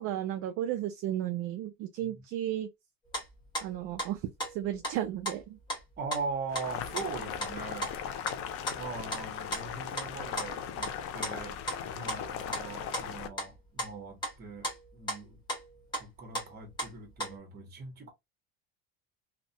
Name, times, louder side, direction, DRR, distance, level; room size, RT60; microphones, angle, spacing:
voice 1, 0.0-2.7 3.6-5.6, right 12 dB, 50° right, 0.4 m, -34 dB
sound 1, 3.1-6.3 6.6-6.7 6.9-11.0 11.2-11.4 11.7-11.8 12.1-12.7 12.9-16.0 16.3-17.4, right 1 dB, 15° left, 1.3 m, -36 dB
voice 2, 6.0-7.9 8.8-11.6 11.8-15.4 16.0-18.1, right 4 dB, 35° right, 1.0 m, -41 dB
Boiling, 6.5-13.3, left 8 dB, 50° left, 0.5 m, -38 dB
2.7 x 2.1 x 2.6 m
cardioid pair, 150°, 30 cm